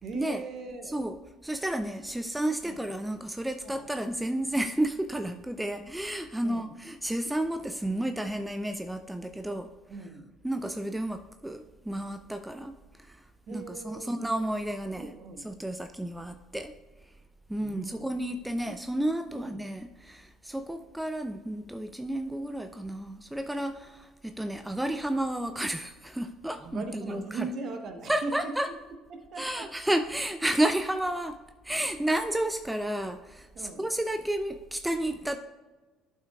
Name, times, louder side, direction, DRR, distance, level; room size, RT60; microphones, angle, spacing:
voice 1, 0.0-1.0 2.6-2.9 3.6-3.9 6.4-6.7 9.9-10.3 13.5-14.3 15.0-15.4 17.6-18.1 19.3-19.5 26.5-28.5 29.1-29.7 33.5-33.9, right 4 dB, 50° right, 5 dB, 1.1 m, -39 dB
voice 2, 1.4-9.7 10.4-13.2 13.5-15.1 15.4-16.7 17.5-27.5 28.1-28.7 29.4-31.4 31.6-35.4, right 1 dB, 5° right, 8 dB, 0.4 m, -31 dB
12.0 x 5.7 x 2.4 m, 1.2 s
hypercardioid pair, 60°, 0 cm